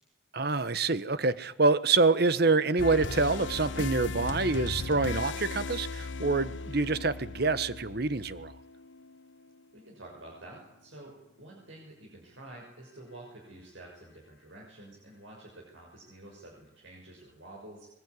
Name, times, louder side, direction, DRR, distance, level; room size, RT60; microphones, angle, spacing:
voice 1, 0.3-8.5, right 3 dB, 55° right, 14 dB, 1.2 m, -26 dB
sound 1, 2.8-9.5, left 3 dB, 75° left, 1.0 m, -37 dB
voice 2, 9.7-17.9, right 1 dB, 80° right, -2 dB, 6.4 m, -49 dB
23.0 x 20.5 x 9.7 m, 0.83 s
head